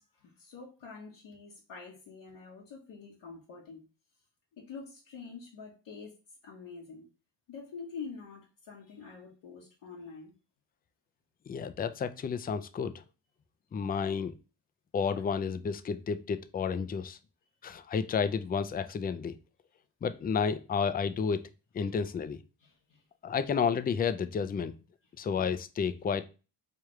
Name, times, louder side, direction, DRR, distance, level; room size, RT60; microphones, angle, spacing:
voice 1, 0.0-3.8 4.6-6.1 6.4-7.1 7.5-10.3 22.6-23.0, left 5 dB, 80° left, 1.2 m, -46 dB
voice 2, 11.5-13.0 13.7-14.3 14.9-17.2 17.6-19.4 20.0-21.4 21.7-22.4 23.2-24.7 25.2-26.2, left 6 dB, 25° left, 0.3 m, -31 dB
4.8 x 2.3 x 2.9 m
cardioid pair, 80°, 44 cm